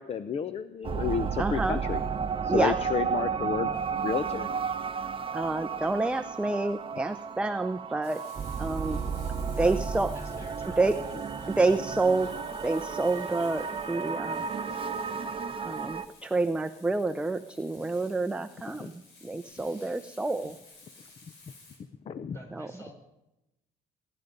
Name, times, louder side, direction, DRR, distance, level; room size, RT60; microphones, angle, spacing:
voice 1, 0.0-2.0 2.4-3.7 4.0-4.5 8.9-9.0 18.8-18.9 22.1-22.4, left 7 dB, 35° left, 14 dB, 0.7 m, -31 dB
sound 1, 0.8-16.1, right 6 dB, 30° right, 0.9 m, -33 dB
voice 2, 1.4-1.8 2.5-2.8 5.3-8.2 8.6-9.0 9.6-10.1 10.8-11.0 11.5-12.3 12.6-14.4 15.6-20.5 22.5-22.7, right 3 dB, 5° right, 9 dB, 0.6 m, -28 dB
Frying (food), 8.0-21.8, left 3 dB, 90° left, 6.2 m, -54 dB
voice 3, 10.1-10.8 22.3-22.9, equal, 15° left, 1 dB, 6.6 m, -48 dB
23.5 x 11.0 x 5.3 m, 0.90 s
cardioid pair, 110°, 17 cm